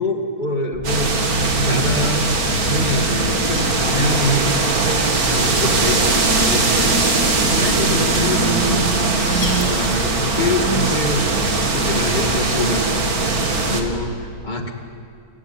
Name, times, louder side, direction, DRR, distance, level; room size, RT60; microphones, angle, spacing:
voice 1, 0.0-2.3 2.6-9.1 9.6-13.1 13.7-14.7, left 2 dB, 25° left, 4 dB, 2.3 m, -25 dB
sound 1, 0.7-14.1, right 1 dB, 80° left, 6.7 m, -32 dB
sound 2, 0.8-13.8, right 3 dB, 60° right, 2.5 m, -20 dB
sound 3, 8.8-10.4, left 3 dB, 50° left, 3.2 m, -34 dB
27.5 x 15.5 x 9.4 m, 2.4 s
omnidirectional pair, 1.8 m